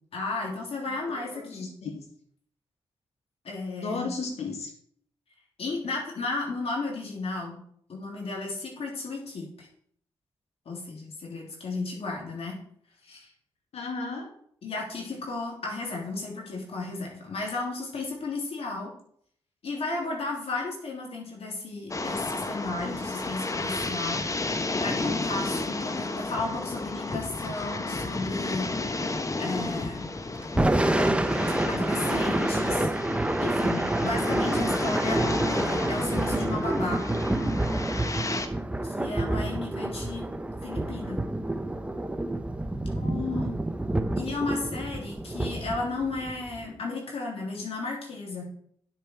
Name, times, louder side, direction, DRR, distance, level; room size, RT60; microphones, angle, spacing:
voice 1, 0.1-1.7 3.4-4.1 5.6-7.6 7.9-9.7 10.6-12.6 13.0-13.3 14.6-18.9 19.6-24.2 24.6-28.7 29.4-30.1 31.7-32.9 33.4-37.0 38.8-40.2 40.6-41.2 44.1-48.5, left 3 dB, 70° left, -1 dB, 3.3 m, -34 dB
voice 2, 1.1-2.0 3.8-4.7 13.7-14.3 42.9-43.6, left 4 dB, 85° left, 3 dB, 2.2 m, -34 dB
sound 1, 21.9-38.5, left 2 dB, 30° left, 1.0 m, -32 dB
Thunder / Rain, 30.4-46.7, right 1 dB, 10° right, 0.8 m, -28 dB
10.5 x 7.0 x 4.6 m, 0.64 s
cardioid pair, 70°, 11 cm